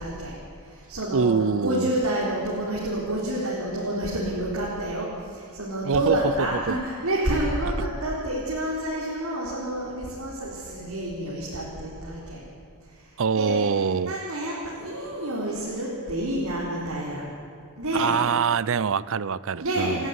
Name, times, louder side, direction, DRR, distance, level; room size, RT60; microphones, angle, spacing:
voice 1, 0.0-1.3 1.6-12.4 12.8-17.2 17.8-18.2 19.6-20.1, right 1 dB, 75° right, 4.2 m, -29 dB
voice 2, 1.1-1.9 5.9-6.8 13.2-14.1 17.9-20.0, right 5 dB, 60° right, 0.6 m, -24 dB
29.0 x 11.5 x 9.6 m
head